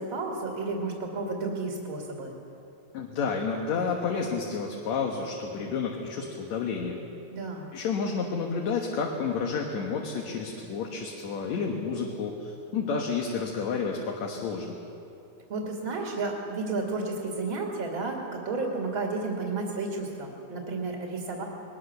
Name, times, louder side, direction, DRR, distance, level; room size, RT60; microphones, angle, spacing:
voice 1, 0.0-2.3 7.3-7.7 15.5-21.5, right 3 dB, 45° right, 0 dB, 2.7 m, -32 dB
voice 2, 2.9-7.0 7.7-14.8, left 5 dB, 65° left, 0 dB, 2.6 m, -30 dB
21.0 x 20.0 x 6.7 m, 2.8 s
omnidirectional pair, 3.4 m